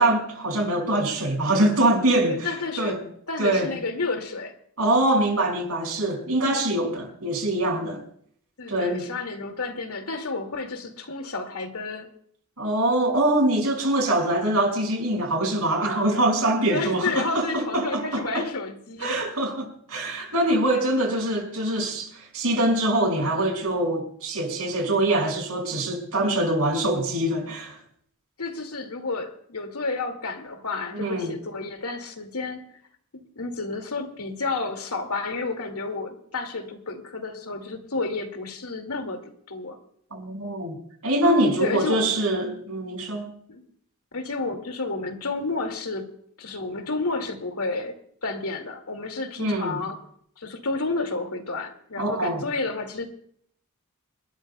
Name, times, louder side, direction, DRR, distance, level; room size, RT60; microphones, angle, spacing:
voice 1, 0.0-2.5 2.8-3.0 3.4-3.7 4.8-8.0 8.7-9.0 12.6-18.4 19.0-27.8 30.9-31.3 40.1-40.8 41.0-43.3 49.4-49.8 52.0-52.4, right 1 dB, 75° right, 5.6 m, -24 dB
voice 2, 2.2-3.0 3.3-4.5 8.6-12.1 16.7-19.2 28.4-32.6 33.1-39.2 39.5-39.8 41.6-42.4 43.5-43.7 44.1-46.1 46.4-50.0 50.4-53.1, left 3 dB, 80° left, 2.2 m, -31 dB
28.0 x 13.0 x 2.3 m
head